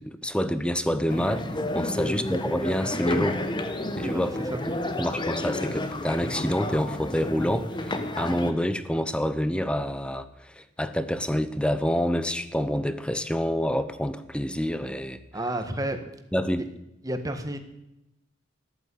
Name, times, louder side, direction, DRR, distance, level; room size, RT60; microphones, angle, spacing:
voice 1, 0.0-1.5 1.7-3.4 4.0-4.6 5.0-15.2 16.3-16.6, equal, 5° left, 13 dB, 0.9 m, -27 dB
sound 1, 1.1-8.5, left 1 dB, 25° left, 1.2 m, -31 dB
voice 2, 4.0-4.6 15.3-16.0 17.0-17.6, right 1 dB, 20° right, 7 dB, 1.6 m, -31 dB
14.0 x 11.5 x 8.5 m, 0.90 s
head